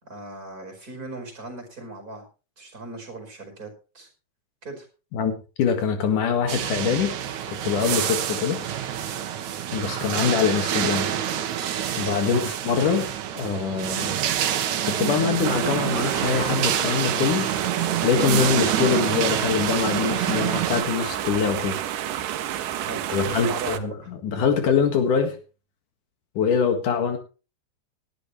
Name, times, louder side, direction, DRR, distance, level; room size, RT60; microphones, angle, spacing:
voice 1, 0.0-2.3 2.6-4.1 4.6-4.9 12.2-12.5 22.5-24.1, right 2 dB, 25° right, 4 dB, 5.2 m, -38 dB
voice 2, 5.6-7.1 7.6-8.6 9.7-11.1 12.0-13.1 13.3-14.2 14.8-17.5 18.0-21.8 23.1-25.4 26.4-27.2, left 6 dB, 75° left, 6 dB, 3.3 m, -23 dB
sound 1, 6.5-20.8, right 10 dB, 70° right, 2.5 m, -27 dB
sound 2, 15.4-23.8, right 11 dB, 90° right, 2.6 m, -30 dB
19.0 x 12.0 x 3.2 m, 0.33 s
omnidirectional pair, 3.7 m